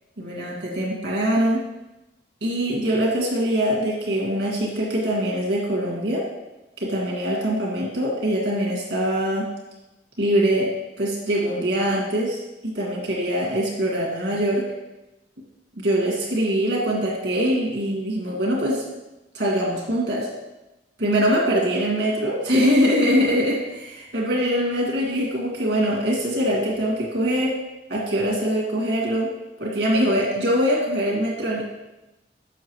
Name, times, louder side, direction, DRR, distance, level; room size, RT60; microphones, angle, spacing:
voice 1, 0.2-1.6 2.4-6.2 6.8-9.5 10.2-10.7 11.0-14.6 15.8-18.8 19.3-20.3 21.0-23.6 24.1-27.5 27.9-29.3 29.6-31.7, equal, 70° right, -3 dB, 1.9 m, -23 dB
7.2 x 5.8 x 3.1 m, 0.99 s
head